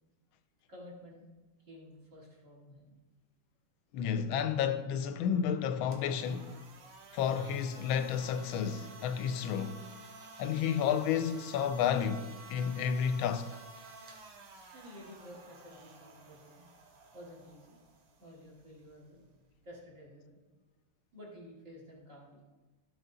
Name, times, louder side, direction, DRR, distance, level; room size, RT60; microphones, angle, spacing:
voice 1, 0.7-1.3 1.6-2.9 14.7-16.6 17.1-17.8 18.2-19.2 19.6-20.4 21.1-22.4, equal, 35° right, 2.6 m, -52 dB
voice 2, 3.9-6.6 7.1-9.8 10.4-13.6, left 8 dB, 75° left, 1.3 m, -31 dB
sound 1, 5.9-19.8, right 3 dB, 90° right, 2.2 m, -52 dB
13.0 x 6.1 x 4.0 m
omnidirectional pair, 2.4 m